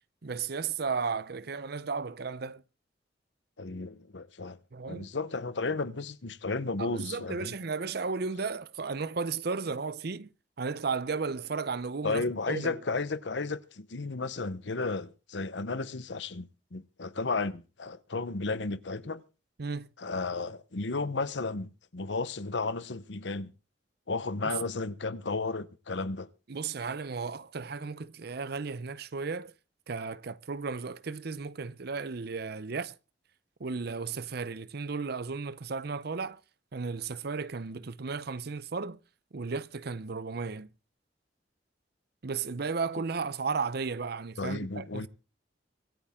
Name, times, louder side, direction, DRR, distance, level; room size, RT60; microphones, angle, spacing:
voice 1, 0.2-2.6 4.7-5.1 6.8-10.3 10.6-12.8 19.6-19.9 24.4-24.6 26.5-29.5 29.9-32.9 33.6-36.4 36.7-39.0 39.3-40.7 42.2-45.1, right 4 dB, 60° right, 0.7 m, -34 dB
voice 2, 3.6-4.6 4.9-7.5 12.0-19.2 20.0-23.5 24.1-26.3 44.4-45.1, left 3 dB, 80° left, 1.0 m, -33 dB
25.0 x 8.7 x 3.7 m
head